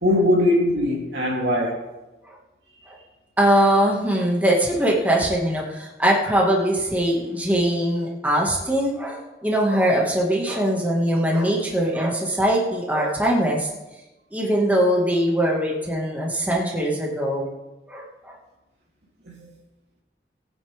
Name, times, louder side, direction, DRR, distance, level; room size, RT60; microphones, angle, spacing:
voice 1, 0.0-1.8 19.3-19.5, left 1 dB, 75° right, 3.3 m, -21 dB
voice 2, 3.4-13.7 14.3-17.5 17.9-18.4, right 1 dB, 10° right, 2.1 m, -21 dB
20.0 x 9.3 x 3.7 m
head